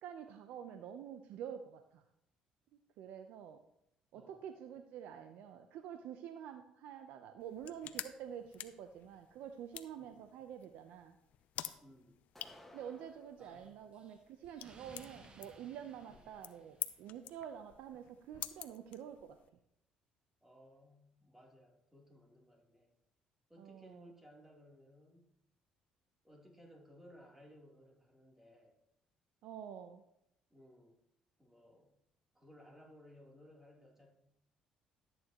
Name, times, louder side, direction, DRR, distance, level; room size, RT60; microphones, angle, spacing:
voice 1, 0.0-2.0 3.0-3.6 4.1-11.1 12.7-19.4 23.6-24.1 29.4-30.0, right 9 dB, 75° right, 7 dB, 0.7 m, -48 dB
voice 2, 4.1-4.4 10.0-10.2 11.8-12.2 13.4-13.8 16.1-16.3 20.4-22.9 23.5-25.3 26.2-28.7 30.5-31.0 31.4-32.0 32.3-34.1, equal, 10° right, -2 dB, 3.3 m, -60 dB
sound 1, 7.4-19.5, left 11 dB, 70° left, 0.6 m, -49 dB
sound 2, 12.3-13.4, left 1 dB, 5° left, 1.7 m, -58 dB
Explosion, 13.4-17.2, right 2 dB, 40° right, 1.7 m, -61 dB
12.5 x 9.2 x 3.0 m, 0.78 s
supercardioid pair, 75°, 3 cm